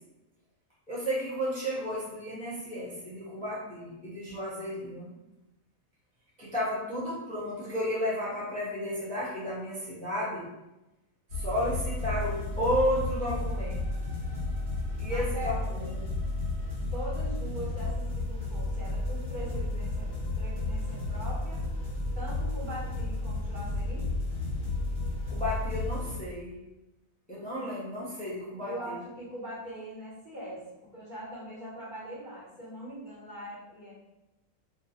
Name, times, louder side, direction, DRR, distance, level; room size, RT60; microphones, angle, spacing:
voice 1, 0.9-5.1 6.4-10.5 11.3-13.8 15.0-16.0 25.3-26.6 27.3-28.9, equal, 5° left, -8 dB, 0.6 m, -32 dB
sound 1, 11.3-26.2, left 2 dB, 50° right, 1.5 m, -32 dB
voice 2, 15.0-15.7 16.9-20.1 20.4-21.7 22.1-24.1 28.6-33.9, right 1 dB, 35° right, -8 dB, 1.5 m, -41 dB
2.6 x 2.6 x 4.1 m, 0.97 s
omnidirectional pair, 1.4 m